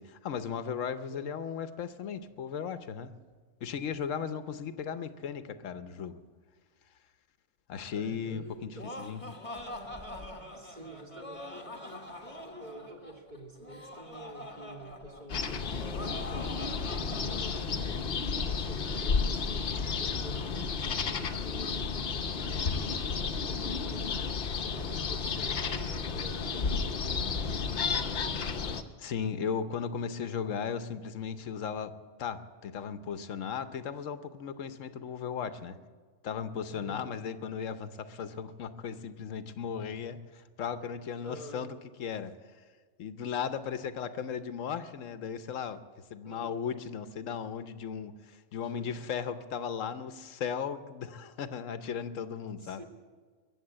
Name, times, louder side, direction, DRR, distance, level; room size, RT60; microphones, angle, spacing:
voice 1, 0.0-3.1 3.6-6.2 7.7-9.2 29.0-35.8 36.2-42.3 43.0-45.8 46.1-52.8, left 7 dB, 85° left, 11 dB, 1.2 m, -36 dB
voice 2, 7.9-8.9 10.5-12.0 12.4-18.1 18.4-23.0 23.5-28.0 36.7-37.0 41.2-41.7 46.2-46.6 48.6-49.1 52.6-52.8, right 1 dB, 35° right, 0 dB, 2.5 m, -48 dB
Laughter, 8.5-17.6, left 1 dB, 25° left, 1.5 m, -44 dB
sound 1, 15.3-28.8, left 5 dB, 55° left, 1.0 m, -32 dB
22.0 x 7.6 x 8.7 m, 1.5 s
omnidirectional pair, 1.3 m